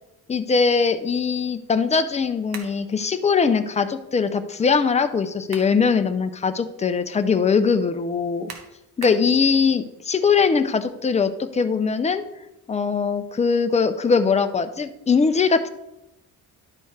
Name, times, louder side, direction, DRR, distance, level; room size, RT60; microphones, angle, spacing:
voice 1, 0.3-8.5 9.0-12.2 12.7-15.7, left 5 dB, 20° left, 9 dB, 0.4 m, -21 dB
sound 1, 2.5-2.8 5.2-5.8 6.3-6.4 8.5-9.3, right 5 dB, 90° right, 1.4 m, -39 dB
11.5 x 4.5 x 4.7 m, 0.91 s
cardioid pair, 180°, 37 cm